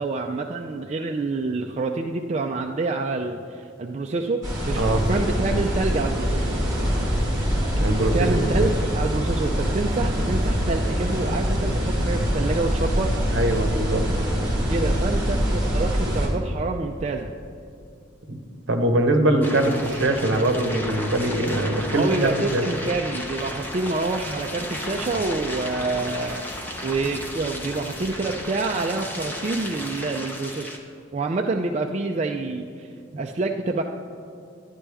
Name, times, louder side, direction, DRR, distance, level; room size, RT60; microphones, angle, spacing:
voice 1, 0.0-6.5 8.1-13.1 14.7-17.3 21.9-26.5 26.8-30.7 31.1-33.8, right 3 dB, 35° right, 2 dB, 0.3 m, -27 dB
sound 1, 4.4-16.3, equal, 15° right, 2.3 m, -24 dB
voice 2, 7.7-8.1 13.3-14.0 18.3-18.4 18.7-22.6, right 1 dB, 65° right, 5 dB, 0.9 m, -22 dB
sound 2, 19.4-30.8, left 1 dB, 10° left, 0.7 m, -34 dB
11.0 x 9.8 x 3.4 m, 2.4 s
head